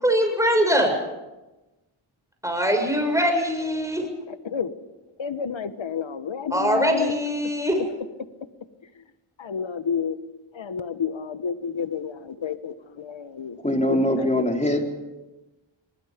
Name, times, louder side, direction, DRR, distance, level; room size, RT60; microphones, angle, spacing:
voice 1, 0.0-0.9 2.4-4.0 6.5-7.8, equal, 5° right, 3 dB, 6.9 m, -22 dB
voice 2, 5.2-7.1 9.4-10.2 10.5-13.6 13.9-14.0 14.4-14.5, left 7 dB, 65° left, 12 dB, 1.4 m, -30 dB
voice 3, 13.6-14.8, left 1 dB, 15° left, 2 dB, 4.1 m, -22 dB
28.0 x 20.0 x 5.2 m, 1.1 s
cardioid pair, 50°, 49 cm